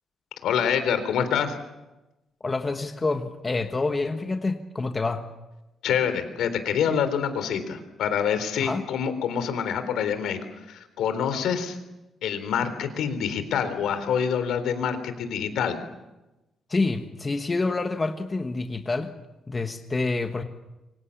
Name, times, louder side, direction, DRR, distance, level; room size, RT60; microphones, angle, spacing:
voice 1, 0.4-1.6 5.8-10.4 10.7-11.8 12.2-15.8, left 7 dB, 75° left, 10 dB, 3.8 m, -26 dB
voice 2, 2.4-5.2 8.6-8.8 16.7-19.1 19.5-20.4, left 3 dB, 20° left, 6 dB, 1.3 m, -27 dB
27.5 x 25.0 x 7.2 m, 1.0 s
cardioid pair, 180°, 0 cm